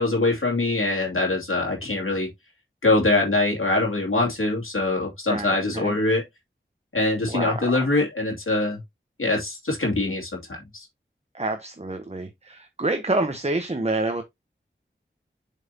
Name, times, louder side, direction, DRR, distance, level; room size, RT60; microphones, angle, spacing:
voice 1, 0.0-2.3 2.8-6.2 6.9-8.8 9.2-10.9, left 2 dB, 85° left, 2.7 m, -23 dB
voice 2, 5.3-6.0 7.3-7.9 11.3-14.2, right 2 dB, 30° right, 1.2 m, -28 dB
7.5 x 5.7 x 2.9 m
wide cardioid pair, 45°, 21 cm